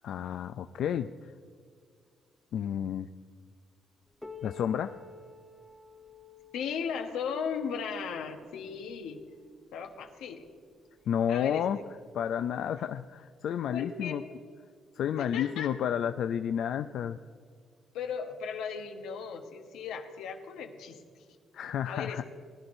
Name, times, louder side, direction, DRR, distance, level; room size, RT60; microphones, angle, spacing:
voice 1, 0.0-1.3 2.5-3.1 4.4-4.9 11.1-11.8 12.1-14.2 15.0-17.2 21.5-22.2, left 9 dB, 70° left, 9 dB, 0.3 m, -31 dB
Piano, 4.2-9.5 10.4-10.5 11.0-11.1 11.9-12.0 13.0-13.1, left 5 dB, 5° left, 0.8 m, -50 dB
voice 2, 6.5-9.2 9.7-10.5 11.3-11.6 13.7-14.6 15.2-15.7 17.9-21.0 21.9-22.2, left 6 dB, 90° left, 4 dB, 1.1 m, -36 dB
19.0 x 11.0 x 2.6 m, 2.1 s
cardioid pair, 90°, 0 cm